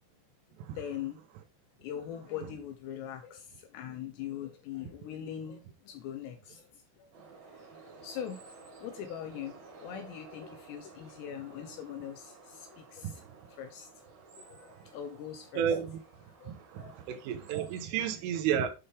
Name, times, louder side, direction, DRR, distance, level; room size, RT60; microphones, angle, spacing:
voice 1, 0.7-1.2 1.8-7.1 7.5-8.5 8.8-13.2 13.6-13.9 14.4-15.7 16.4-16.5 16.8-17.0, left 9 dB, 85° left, 2.5 m, -42 dB
sound 1, 7.1-17.9, right 4 dB, 55° right, 4.4 m, -54 dB
voice 2, 15.6-16.0 16.5-18.7, right 8 dB, 85° right, 3.5 m, -32 dB
8.7 x 5.5 x 3.3 m
omnidirectional pair, 5.6 m